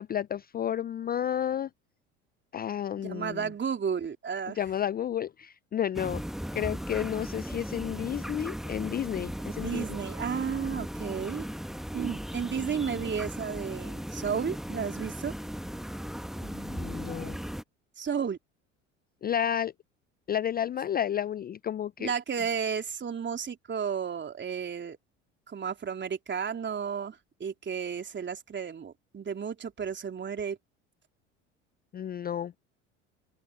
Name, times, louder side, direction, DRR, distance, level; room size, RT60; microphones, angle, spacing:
voice 1, 0.0-1.7 2.5-3.5 4.5-6.2 6.5-9.9 16.4-17.4 19.2-19.7 20.3-22.1 31.9-32.6, left 10 dB, 25° left, 0.6 m, -31 dB
voice 2, 3.0-4.6 9.6-11.5 11.9-15.3 18.0-18.4 22.0-25.0 25.5-30.6, right 7 dB, 30° right, 3.7 m, -33 dB
sound 1, 5.9-17.6, equal, ahead, 1.5 m, -37 dB
open air
hypercardioid pair, 70°, 37 cm